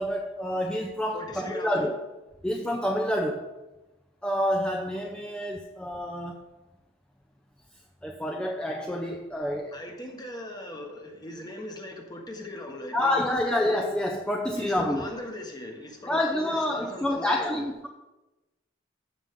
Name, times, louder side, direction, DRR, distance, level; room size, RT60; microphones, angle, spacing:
voice 1, 0.0-1.9 2.4-3.5 4.2-6.4 8.0-9.8 12.9-15.1 16.1-17.9, left 1 dB, 5° left, 0 dB, 0.6 m, -28 dB
voice 2, 1.1-1.9 9.7-13.2 14.5-17.7, left 1 dB, 20° left, 2 dB, 1.3 m, -39 dB
13.5 x 7.0 x 3.7 m, 1.0 s
head